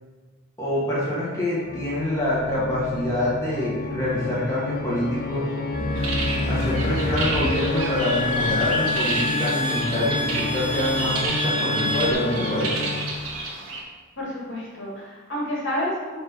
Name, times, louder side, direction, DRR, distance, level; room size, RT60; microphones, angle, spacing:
voice 1, 0.6-5.5 6.5-12.8, left 1 dB, 15° left, -8 dB, 1.7 m, -26 dB
Organ, 1.6-13.4, left 3 dB, 45° left, 0.5 m, -31 dB
sound 1, 5.7-12.1, left 1 dB, 20° right, 0.7 m, -28 dB
sound 2, 5.9-13.8, right 3 dB, 85° right, 1.4 m, -31 dB
voice 2, 14.2-16.2, equal, 65° left, -5 dB, 2.0 m, -29 dB
5.5 x 4.3 x 5.4 m, 1.3 s
head